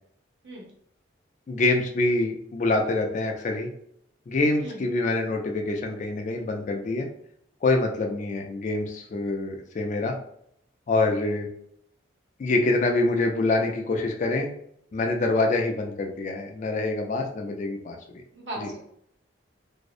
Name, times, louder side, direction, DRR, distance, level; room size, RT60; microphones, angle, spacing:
voice 1, 1.5-3.7 4.3-7.1 7.6-10.1 10.9-11.5 12.4-14.5 14.9-18.0 18.6-18.7, left 2 dB, 40° left, 2 dB, 0.3 m, -25 dB
voice 2, 18.3-18.8, right 1 dB, 70° right, -3 dB, 0.8 m, -37 dB
2.6 x 2.0 x 2.4 m, 0.69 s
head